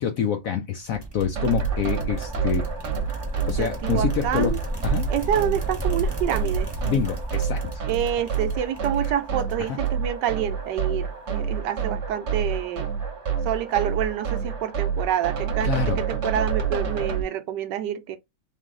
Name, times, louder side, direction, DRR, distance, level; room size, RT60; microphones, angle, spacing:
voice 1, 0.0-2.7 3.5-4.5 4.8-5.1 6.8-7.8 9.0-9.1 9.6-9.8 15.6-16.0, left 8 dB, 70° left, 0.8 m, -26 dB
sound 1, 0.9-10.2, right 1 dB, 20° right, 0.8 m, -32 dB
sound 2, 1.4-17.2, right 7 dB, 45° right, 1.0 m, -28 dB
voice 2, 3.6-4.6 5.1-6.7 7.9-12.9 13.4-18.2, right 10 dB, 75° right, 1.2 m, -27 dB
3.5 x 3.1 x 3.7 m
omnidirectional pair, 2.0 m